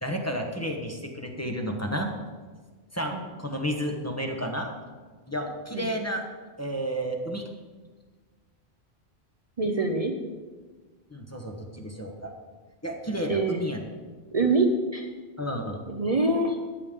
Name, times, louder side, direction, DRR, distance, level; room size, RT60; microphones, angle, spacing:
voice 1, 0.0-2.1 2.9-4.7 5.3-6.2 6.6-7.4 11.1-12.3 12.8-13.8 15.4-15.8, equal, 15° left, 1 dB, 1.1 m, -31 dB
voice 2, 9.6-10.1 13.3-13.6 14.3-15.1 15.9-16.6, right 2 dB, 40° right, 3 dB, 0.8 m, -25 dB
13.5 x 9.4 x 3.7 m, 1.4 s
omnidirectional pair, 1.1 m